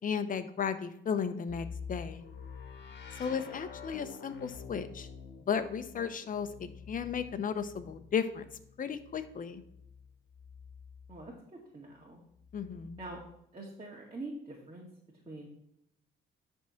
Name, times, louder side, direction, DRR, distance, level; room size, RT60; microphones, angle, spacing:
voice 1, 0.0-2.2 3.2-5.1 5.5-8.4 8.8-9.6 12.5-13.0, left 7 dB, 45° left, 11 dB, 0.8 m, -34 dB
sound 1, 1.5-11.3 12.3-13.3, left 6 dB, 60° left, 1.3 m, -48 dB
voice 2, 11.1-12.2 13.0-13.2 13.5-14.9 15.3-15.5, right 2 dB, 30° right, -3 dB, 2.0 m, -45 dB
10.5 x 3.7 x 5.8 m, 0.77 s
cardioid pair, 90°, 20 cm